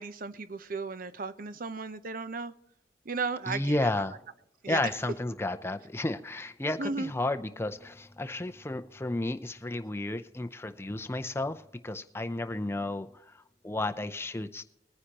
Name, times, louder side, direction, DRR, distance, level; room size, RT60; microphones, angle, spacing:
voice 1, 0.0-2.5 3.1-3.9 4.6-4.8 6.8-7.1, right 4 dB, 50° right, 13 dB, 0.7 m, -35 dB
voice 2, 3.5-4.2 4.7-14.6, left 2 dB, 15° left, 8 dB, 0.5 m, -32 dB
22.0 x 9.7 x 2.9 m, 0.87 s
head